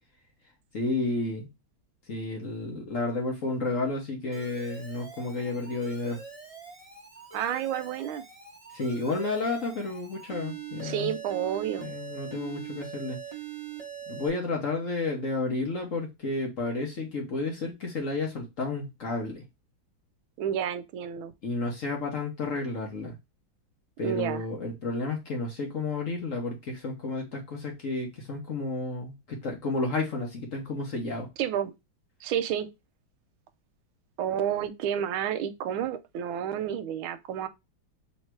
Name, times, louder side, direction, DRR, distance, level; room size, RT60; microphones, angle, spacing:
voice 1, 0.7-1.5 2.1-6.2 8.7-11.1 11.8-13.2 14.1-19.4 21.4-23.1 24.0-31.3, left 3 dB, 50° left, 1.2 m, -31 dB
Alarm, 4.3-14.3, right 8 dB, 30° right, 0.7 m, -43 dB
voice 2, 7.3-8.2 10.8-11.9 20.4-21.3 24.0-24.4 31.4-31.7 32.2-32.7 34.2-37.5, right 9 dB, 90° right, 1.4 m, -30 dB
3.3 x 3.2 x 4.4 m
omnidirectional pair, 2.2 m